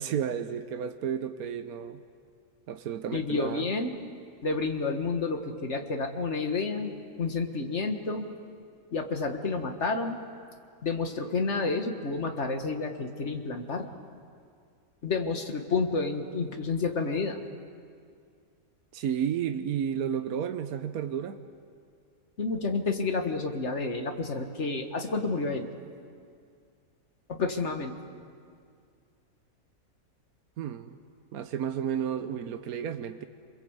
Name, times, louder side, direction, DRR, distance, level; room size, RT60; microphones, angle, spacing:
voice 1, 0.0-2.0 2.7-3.7 18.9-21.4 30.6-31.0 31.3-33.2, right 8 dB, 75° right, 8 dB, 1.3 m, -32 dB
voice 2, 3.1-3.9 4.4-8.3 8.9-10.2 10.8-13.9 15.0-17.4 22.4-25.7 27.3-27.9, left 4 dB, 50° left, 5 dB, 2.0 m, -30 dB
28.5 x 22.0 x 8.2 m, 2.3 s
omnidirectional pair, 1.6 m